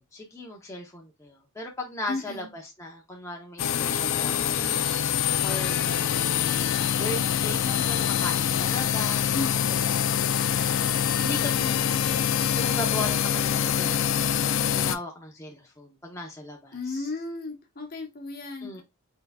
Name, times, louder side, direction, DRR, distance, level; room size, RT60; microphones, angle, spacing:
voice 1, 0.0-9.9 11.1-11.9 12.6-17.1 18.6-18.8, left 1 dB, 15° left, 0.7 m, -38 dB
voice 2, 2.1-2.5 9.3-9.8 16.7-18.8, left 3 dB, 45° left, 1.0 m, -34 dB
sound 1, 3.6-15.0, left 9 dB, 60° left, 0.4 m, -25 dB
4.6 x 3.9 x 2.3 m
head